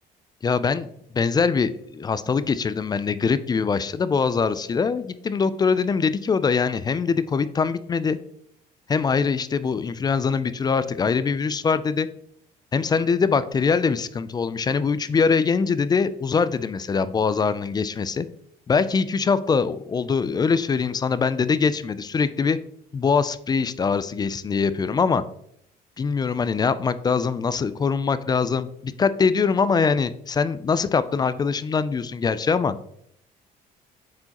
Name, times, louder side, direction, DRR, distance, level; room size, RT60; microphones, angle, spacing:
voice 1, 0.4-0.9 1.1-8.2 8.9-12.1 12.7-18.3 18.7-22.6 22.9-25.2 26.0-32.8, left 5 dB, 25° left, 14 dB, 0.3 m, -23 dB
7.6 x 4.7 x 2.9 m, 0.70 s
cardioid pair, 110°, 17 cm